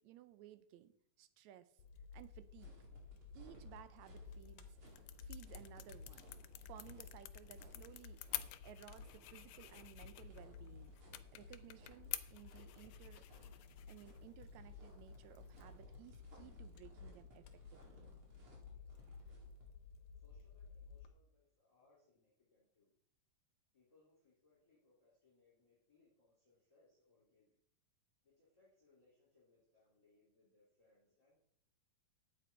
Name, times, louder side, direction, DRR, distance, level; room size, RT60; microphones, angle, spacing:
voice 1, 0.0-1.7 2.1-2.7 3.3-6.3 6.6-8.2 8.6-10.9 11.3-13.2 13.9-17.5 17.7-18.0, right 13 dB, 80° right, 12 dB, 1.7 m, -58 dB
Fire, 1.8-21.1, left 5 dB, 70° left, 1.9 m, -55 dB
sound 1, 2.6-19.6, right 2 dB, 45° right, 2.7 m, -63 dB
sound 2, 4.3-15.8, left 15 dB, 90° left, 2.2 m, -51 dB
voice 2, 18.7-19.4 20.1-22.9 23.7-27.5 28.2-31.4, left 3 dB, 10° left, -7 dB, 3.5 m, -73 dB
9.9 x 8.1 x 4.6 m, 0.69 s
omnidirectional pair, 3.8 m